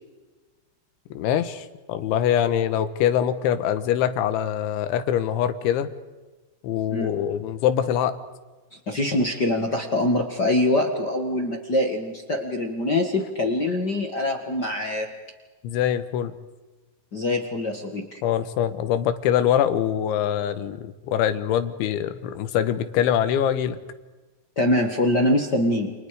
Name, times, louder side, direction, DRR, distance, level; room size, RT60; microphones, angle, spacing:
voice 1, 1.1-5.9 6.6-8.2 15.6-16.3 18.2-23.8, left 10 dB, 90° left, 10 dB, 3.7 m, -24 dB
voice 2, 8.9-15.1 17.1-18.2 24.5-25.9, left 1 dB, 60° left, 3 dB, 1.1 m, -24 dB
29.5 x 29.5 x 5.0 m, 1.2 s
omnidirectional pair, 5.2 m